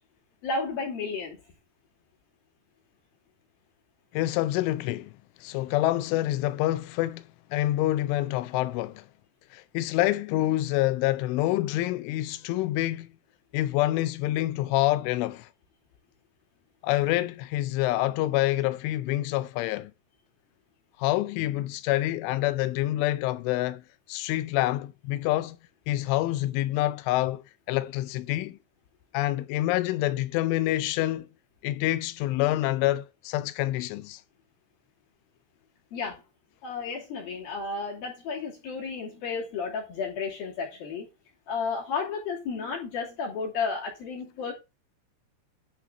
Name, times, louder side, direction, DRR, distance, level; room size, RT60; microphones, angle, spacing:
voice 1, 0.4-1.4 35.9-36.2 36.6-41.1 41.5-44.5, left 4 dB, 55° left, 4.4 m, -32 dB
voice 2, 4.1-5.1 5.4-9.1 9.5-13.1 13.5-15.5 16.8-19.9 21.0-23.8 24.1-25.6 25.9-28.6 29.1-31.3 31.6-34.2, left 15 dB, 90° left, 3.2 m, -27 dB
11.0 x 5.6 x 3.9 m
omnidirectional pair, 5.4 m